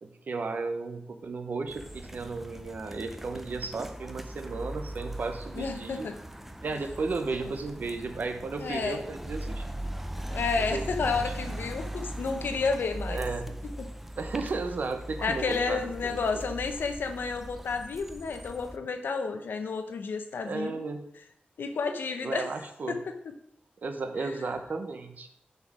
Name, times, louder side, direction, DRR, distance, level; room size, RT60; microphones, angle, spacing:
voice 1, 0.0-6.1 6.6-9.7 10.6-11.3 13.1-13.5 14.2-16.2 20.4-21.0 22.2-23.0 23.8-25.3, right 3 dB, 60° right, 7 dB, 0.9 m, -34 dB
sound 1, 1.7-18.8, right 1 dB, 5° right, 0.5 m, -39 dB
voice 2, 5.5-6.1 7.4-7.5 8.6-9.0 10.3-13.2 15.2-20.9 21.6-22.5 22.9-23.1 24.2-24.3, left 4 dB, 90° left, 6 dB, 0.8 m, -31 dB
6.7 x 4.4 x 6.1 m, 0.71 s
wide cardioid pair, 125°, 3 cm